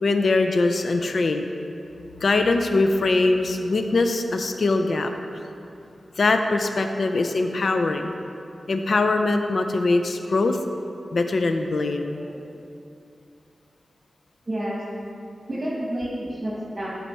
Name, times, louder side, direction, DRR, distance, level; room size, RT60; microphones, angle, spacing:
voice 1, 0.0-1.5 2.2-5.1 6.2-8.1 8.7-10.6 11.1-12.2, left 3 dB, 60° left, 6 dB, 0.4 m, -22 dB
voice 2, 14.5-14.8 15.5-16.9, right 1 dB, 35° right, -8 dB, 1.3 m, -30 dB
10.5 x 4.1 x 4.3 m, 2.6 s
wide cardioid pair, 115°, 0 cm